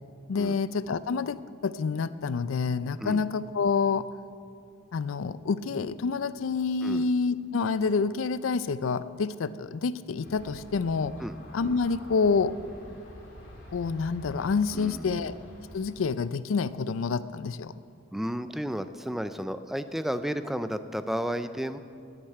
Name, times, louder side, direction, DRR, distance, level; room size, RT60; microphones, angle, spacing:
voice 1, 0.3-4.1 4.9-11.1 11.5-12.5 13.7-15.3 15.7-17.7, left 4 dB, 90° left, 15 dB, 0.4 m, -28 dB
Aircraft, 10.2-16.0, equal, 70° left, 3.0 m, -47 dB
voice 2, 14.7-15.2 18.1-21.8, equal, ahead, 10 dB, 0.4 m, -32 dB
10.0 x 8.8 x 9.9 m, 2.5 s
head